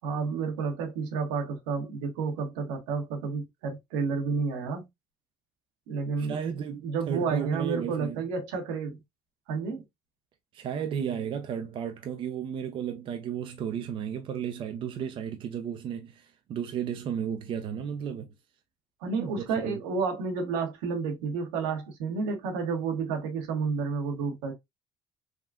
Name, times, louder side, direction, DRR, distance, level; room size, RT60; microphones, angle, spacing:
voice 1, 0.0-4.8 5.9-6.4 6.8-9.0 9.5-9.8 19.0-24.5, right 5 dB, 90° right, 1.0 m, -30 dB
voice 2, 6.2-8.2 10.5-18.3 19.1-19.8, right 8 dB, 55° right, 0.5 m, -34 dB
3.5 x 2.3 x 2.4 m
supercardioid pair, 80°, 11 cm